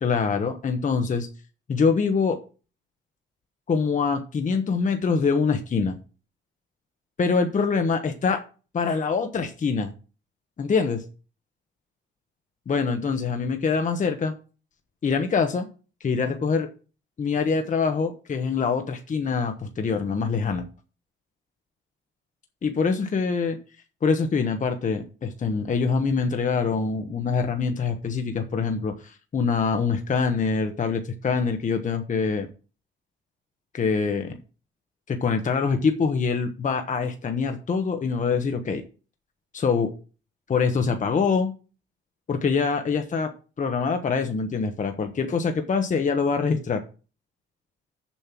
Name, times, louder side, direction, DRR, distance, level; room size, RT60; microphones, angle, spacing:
voice 1, 0.0-1.3 1.7-2.4 3.7-6.0 7.2-8.4 8.7-9.9 10.6-11.0 12.7-14.3 15.0-15.7 16.0-16.7 17.2-20.6 22.6-23.6 24.0-32.5 33.7-34.4 35.1-38.8 39.5-39.9 40.5-41.5 42.3-43.3 43.6-46.8, left 5 dB, 40° left, 6 dB, 1.1 m, -24 dB
7.2 x 5.4 x 6.0 m, 0.36 s
cardioid pair, 90°, 20 cm